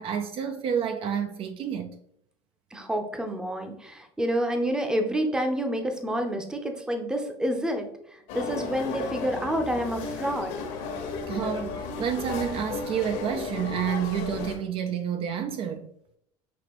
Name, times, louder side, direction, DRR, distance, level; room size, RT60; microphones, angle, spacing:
voice 1, 0.0-1.9 11.3-15.9, right 8 dB, 45° right, 0.4 m, -29 dB
voice 2, 2.7-10.5, equal, 5° right, 0.6 m, -28 dB
sound 1, 8.3-14.6, left 4 dB, 70° left, 1.1 m, -34 dB
6.0 x 2.9 x 3.0 m
supercardioid pair, 115°, 13 cm